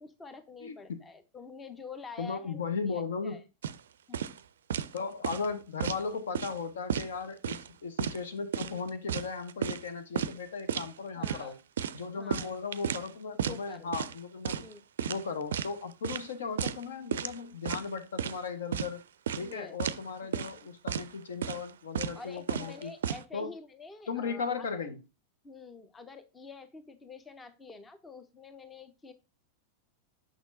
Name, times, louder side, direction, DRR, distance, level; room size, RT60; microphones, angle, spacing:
voice 1, 0.0-3.4 4.1-4.4 11.1-11.6 12.2-12.5 13.5-13.9 14.5-14.8 19.4-19.8 20.2-20.5 22.1-24.9 25.4-29.1, left 4 dB, 15° left, 0.7 m, -47 dB
voice 2, 0.6-1.0 2.2-3.4 4.9-11.6 11.9-14.6 15.1-19.0 19.4-22.9 23.3-23.5 24.1-25.0, left 5 dB, 65° left, 0.9 m, -36 dB
sound 1, 3.6-3.8 4.1-4.4 4.7-5.0 5.2-6.0 6.3-6.6 6.9-7.7 8.0-8.2 8.5-9.9 10.2-10.3 10.7-10.9 11.2-11.4 11.8-13.1 13.4-13.6 13.9-14.2 14.4-14.7 15.0-15.7 16.0-16.3 16.6-16.8 17.1-17.4 17.7-18.4 18.7-18.9 19.3-19.5 19.8-20.0 20.3-20.6 20.9-21.1 21.4-21.7 21.9-22.2 22.5-23.2, right 9 dB, 65° right, 0.4 m, -33 dB
6.2 x 6.1 x 2.5 m
figure-of-eight pair, 90°, 0 cm